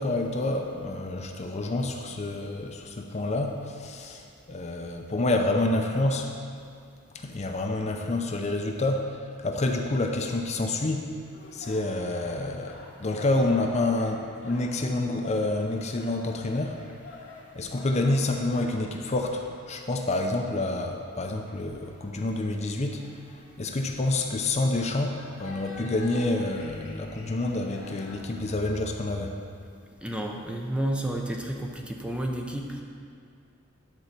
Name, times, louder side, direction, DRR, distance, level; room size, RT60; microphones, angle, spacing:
voice 1, 0.0-6.3 7.1-11.1 11.5-16.8 17.5-29.4, left 2 dB, 35° left, 3 dB, 0.6 m, -28 dB
sound 1, 11.2-28.5, left 2 dB, 65° left, 2.2 m, -48 dB
voice 2, 30.0-32.8, right 1 dB, 5° right, 1 dB, 0.6 m, -31 dB
10.5 x 4.3 x 6.6 m, 2.3 s
head